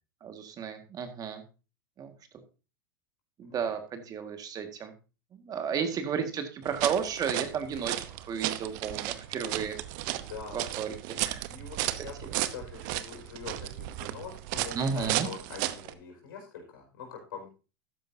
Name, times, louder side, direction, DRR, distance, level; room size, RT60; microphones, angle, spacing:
voice 1, 0.2-1.4 2.0-2.1 3.4-4.9 5.3-9.8 10.0-10.1 10.5-11.4 12.2-12.3 14.7-15.3, right 7 dB, 35° right, 7 dB, 1.8 m, -33 dB
voice 2, 3.4-3.7 5.7-5.9 10.2-10.7 11.3-17.5, left 6 dB, 75° left, 2 dB, 5.1 m, -44 dB
sound 1, 6.6-15.9, right 15 dB, 60° right, 0.9 m, -34 dB
13.0 x 10.0 x 2.7 m, 0.32 s
hypercardioid pair, 100°, 11 cm